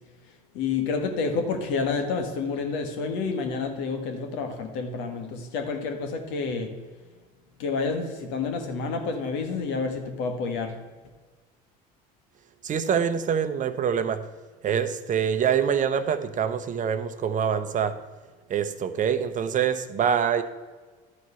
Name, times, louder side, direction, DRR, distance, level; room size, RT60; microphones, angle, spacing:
voice 1, 0.5-6.7 7.6-10.7, left 4 dB, 70° left, 5 dB, 1.7 m, -29 dB
voice 2, 12.6-14.2 14.6-17.9 18.5-20.4, right 8 dB, 40° right, 10 dB, 0.8 m, -25 dB
12.0 x 4.6 x 5.7 m, 1.4 s
supercardioid pair, 85°, 20 cm